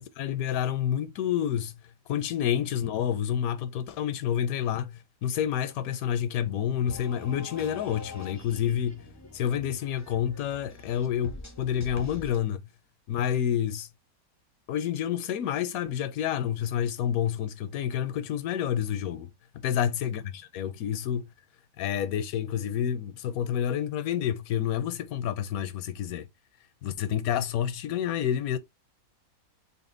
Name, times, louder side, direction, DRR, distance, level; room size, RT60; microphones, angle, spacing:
voice 1, 0.2-1.7 2.1-9.0 9.3-12.7 13.1-13.9 14.7-21.3 21.8-26.3 26.8-28.6, left 9 dB, 85° left, 1.0 m, -29 dB
sound 1, 6.9-12.4, left 3 dB, 25° left, 0.3 m, -44 dB
4.1 x 2.1 x 3.7 m
omnidirectional pair, 1.5 m